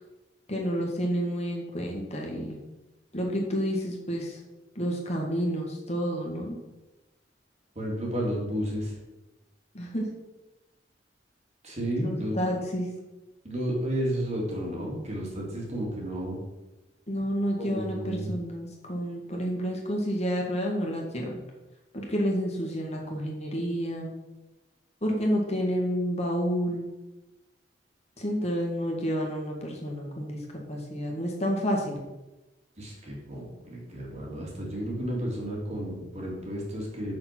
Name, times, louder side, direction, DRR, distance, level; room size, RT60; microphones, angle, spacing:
voice 1, 0.5-2.6 3.1-4.4 4.8-6.6 9.7-10.1 12.0-12.9 17.1-21.4 21.9-24.1 25.0-26.9 28.2-32.0, equal, 35° left, 0 dB, 1.8 m, -29 dB
voice 2, 7.7-9.0 11.6-12.4 13.4-16.4 17.6-18.3 32.8-37.2, equal, 40° right, -3 dB, 2.7 m, -32 dB
7.1 x 6.4 x 6.0 m, 1.0 s
head